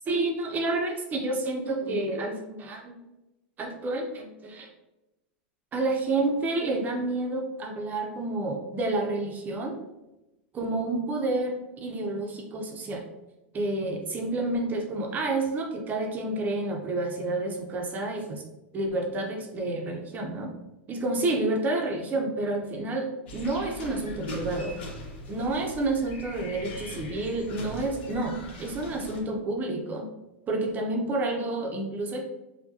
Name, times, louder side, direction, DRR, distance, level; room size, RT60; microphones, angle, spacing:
voice 1, 0.1-2.9 3.6-4.7 5.7-9.8 10.5-13.0 13.5-18.4 18.7-20.5 20.9-24.8 25.3-30.1 30.5-32.2, right 2 dB, 30° right, 2 dB, 0.6 m, -29 dB
sound 1, 23.3-29.2, left 1 dB, 70° left, 0.9 m, -41 dB
4.5 x 2.2 x 2.7 m, 0.97 s
hypercardioid pair, 115°, 6 cm